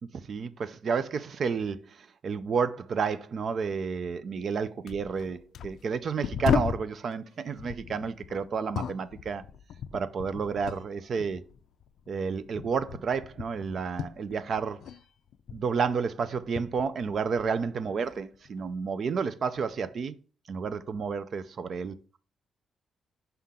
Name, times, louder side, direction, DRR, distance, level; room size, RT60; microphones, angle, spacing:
voice 1, 0.3-1.8 2.2-9.4 9.9-11.4 12.1-14.8 15.5-20.2 20.5-22.0, right 5 dB, 40° right, 0.4 m, -31 dB
sound 1, 4.4-4.6 4.9-6.9 7.6-10.9 11.2-15.0 15.3-17.6 18.1-18.8 19.6-19.7, left 8 dB, 65° left, 0.4 m, -36 dB
5.7 x 5.5 x 3.6 m
wide cardioid pair, 175°, 0 cm